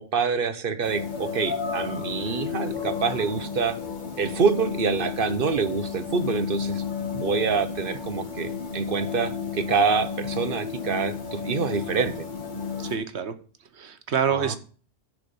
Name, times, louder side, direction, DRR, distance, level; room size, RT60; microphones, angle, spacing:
voice 1, 0.0-3.8 4.2-6.8 7.1-12.3 14.3-14.6, right 5 dB, 55° right, 12 dB, 1.1 m, -26 dB
sound 1, 0.8-13.0, left 6 dB, 45° left, 1.6 m, -32 dB
voice 2, 12.8-13.3 13.7-14.6, right 7 dB, 90° right, 11 dB, 1.3 m, -27 dB
10.5 x 4.7 x 6.9 m, 0.40 s
omnidirectional pair, 1.1 m